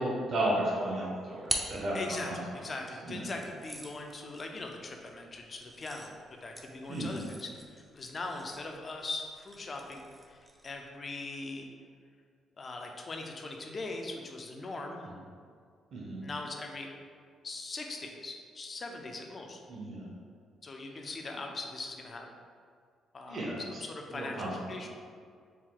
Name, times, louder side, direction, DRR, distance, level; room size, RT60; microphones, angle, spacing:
voice 1, 0.0-2.4 3.0-3.2 6.9-7.2 15.0-15.1 15.9-16.2 19.7-20.1 23.3-23.8 24.1-24.5, right 1 dB, 50° right, -4 dB, 0.9 m, -33 dB
sound 1, 0.8-2.6 3.3-10.9, right 1 dB, 10° right, 0.5 m, -44 dB
voice 2, 1.6-10.4 10.6-11.7 12.6-15.1 16.2-16.9 17.4-19.6 20.6-22.3 23.1-23.4 23.7-24.9, left 3 dB, 40° left, 2 dB, 0.5 m, -41 dB
4.4 x 2.2 x 3.8 m, 2.1 s
cardioid pair, 90°, 0 cm